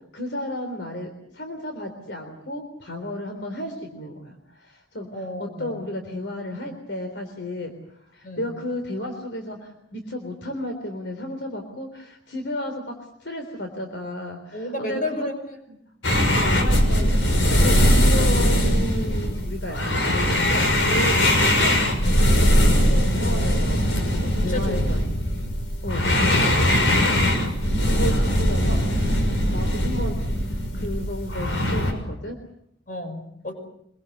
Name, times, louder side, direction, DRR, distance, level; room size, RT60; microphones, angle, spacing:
voice 1, 0.1-5.1 5.4-7.7 8.1-12.9 13.2-15.3 16.1-21.9 22.7-25.0 25.8-27.3 27.6-30.2 30.7-32.4, left 1 dB, 70° left, 5 dB, 3.8 m, -33 dB
voice 2, 5.1-5.8 8.2-8.4 14.5-15.8 22.9-23.6 24.3-24.9 32.9-33.6, left 1 dB, 45° left, 6 dB, 5.9 m, -33 dB
sound 1, 16.0-31.9, equal, 85° left, 6.2 m, -20 dB
25.5 x 23.0 x 8.1 m, 0.73 s
head